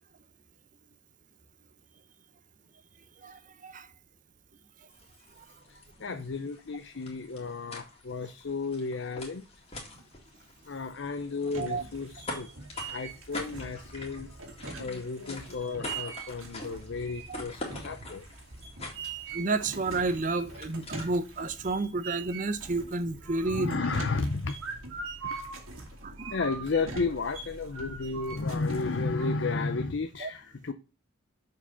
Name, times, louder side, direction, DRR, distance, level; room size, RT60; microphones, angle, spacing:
voice 1, 3.2-3.9 5.4-5.5 11.6-11.8 17.3-17.4 19.3-23.9 26.0-26.4 30.2-30.3, right 3 dB, 40° right, 0.6 m, -31 dB
sound 1, 4.9-21.4, left 2 dB, 30° left, 2.1 m, -45 dB
voice 2, 5.7-9.4 10.7-12.5 12.9-14.3 14.8-18.2 23.5-24.6 25.2-25.4 26.3-30.7, left 4 dB, 60° left, 0.6 m, -33 dB
sound 2, 11.5-29.3, right 4 dB, 80° right, 2.0 m, -42 dB
6.8 x 4.8 x 5.6 m
head